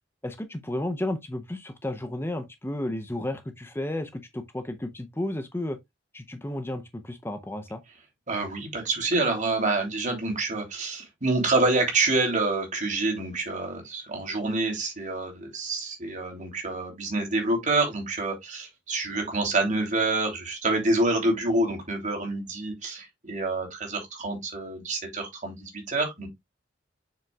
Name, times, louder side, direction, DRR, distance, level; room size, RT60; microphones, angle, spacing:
voice 1, 0.2-5.8 6.1-7.8, left 1 dB, 15° left, 0.6 m, -32 dB
voice 2, 8.3-26.3, right 2 dB, 40° right, 2.9 m, -27 dB
7.3 x 6.1 x 2.3 m
head